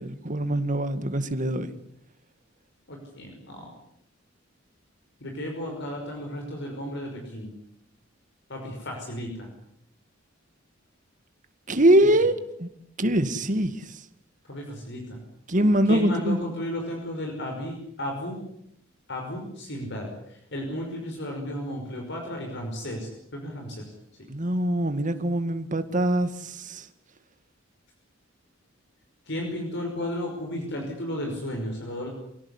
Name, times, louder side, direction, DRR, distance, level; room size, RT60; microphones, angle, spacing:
voice 1, 0.0-1.7 11.7-12.7 13.0-13.9 15.5-16.4 24.3-26.9, right 1 dB, 40° right, 1.9 m, -23 dB
voice 2, 2.9-3.7 5.2-7.5 8.5-9.5 14.5-15.2 15.9-18.4 19.1-23.8 24.2-24.3 29.3-32.1, left 1 dB, 60° left, 5.6 m, -34 dB
27.5 x 17.0 x 9.8 m
head